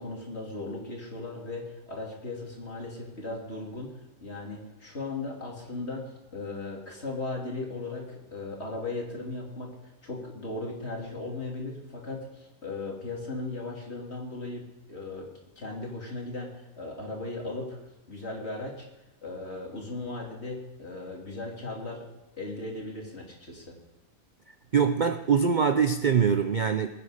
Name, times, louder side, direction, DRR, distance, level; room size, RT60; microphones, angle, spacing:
voice 1, 0.0-3.9 4.2-15.3 15.6-17.8 18.1-18.9 19.2-22.1 22.4-23.8, left 2 dB, 50° left, -1 dB, 3.2 m, -37 dB
voice 2, 24.7-26.9, right 6 dB, 50° right, 7 dB, 0.6 m, -23 dB
20.5 x 9.6 x 5.0 m, 1.0 s
omnidirectional pair, 1.5 m